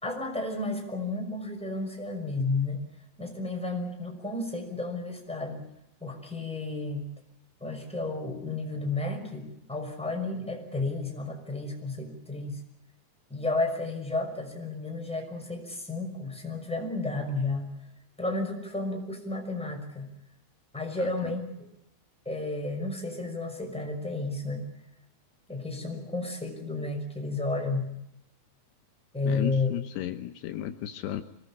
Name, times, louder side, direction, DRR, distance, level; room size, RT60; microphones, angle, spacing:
voice 1, 0.0-2.8 3.2-5.6 6.0-7.0 7.6-12.6 13.3-17.7 18.2-20.1 20.7-21.7 22.3-24.6 25.5-27.9 29.1-29.7, left 3 dB, ahead, 2 dB, 5.4 m, -32 dB
voice 2, 29.3-31.2, left 11 dB, 75° left, 8 dB, 3.0 m, -34 dB
26.0 x 19.5 x 8.6 m, 0.84 s
omnidirectional pair, 5.0 m